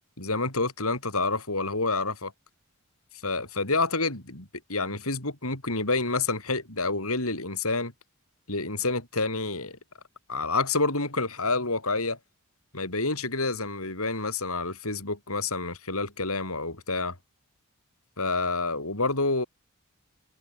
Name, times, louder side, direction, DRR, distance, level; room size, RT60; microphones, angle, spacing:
voice 1, 0.2-2.3 3.2-7.9 8.5-9.8 10.3-12.2 12.7-17.2 18.2-19.5, left 3 dB, 75° left, 7.7 m, -28 dB
head